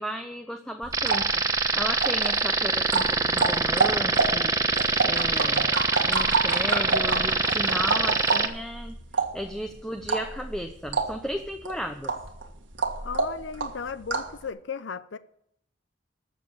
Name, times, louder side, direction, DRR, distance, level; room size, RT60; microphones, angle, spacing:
voice 1, 0.0-4.5 5.0-5.7 6.0-8.9 9.3-12.1, equal, 5° left, 0.8 m, -34 dB
sound 1, 0.8-14.4, right 4 dB, 85° right, 1.8 m, -29 dB
sound 2, 0.9-8.5, right 3 dB, 20° right, 1.0 m, -24 dB
voice 2, 13.0-15.2, left 5 dB, 80° left, 0.6 m, -36 dB
13.5 x 7.5 x 7.2 m
head